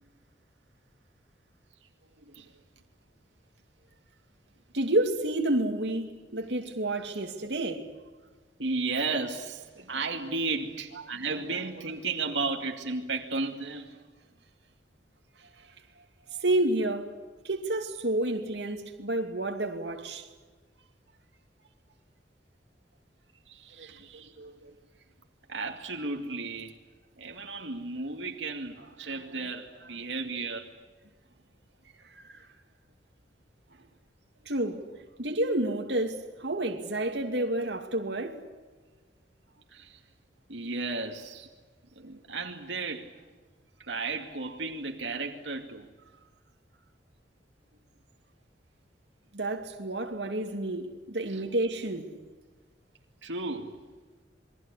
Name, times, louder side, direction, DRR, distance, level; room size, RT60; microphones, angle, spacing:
voice 1, 2.2-2.5 8.6-14.0 23.5-24.8 25.5-26.8 27.2-30.7 39.7-40.0 40.5-41.5 42.0-43.1 43.8-45.9 51.3-51.4 53.2-53.8, right 3 dB, 90° right, 2.4 m, -34 dB
voice 2, 4.7-7.8 16.4-17.1 17.4-20.3 32.2-32.5 34.5-34.8 35.2-38.4 49.3-52.1, right 1 dB, 70° right, 2.6 m, -29 dB
28.0 x 22.5 x 8.4 m
head